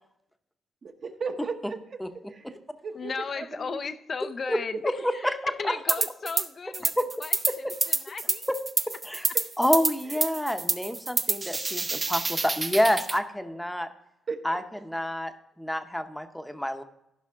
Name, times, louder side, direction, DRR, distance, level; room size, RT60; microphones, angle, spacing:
voice 1, 0.8-2.0 2.3-2.6 2.8-3.8 4.5-4.8 10.1-10.2 14.3-14.6, right 5 dB, 45° right, 1.1 m, -36 dB
voice 2, 3.0-5.0 5.3-5.4 5.6-6.9 7.2-8.5, left 5 dB, 40° left, 0.5 m, -35 dB
sound 1, 5.9-6.5 6.7-13.2, right 3 dB, 25° right, 0.7 m, -28 dB
voice 3, 9.6-13.9 14.4-15.3 15.6-16.8, equal, 5° left, 0.8 m, -28 dB
15.0 x 5.7 x 3.6 m
cardioid pair, 90°, 0 cm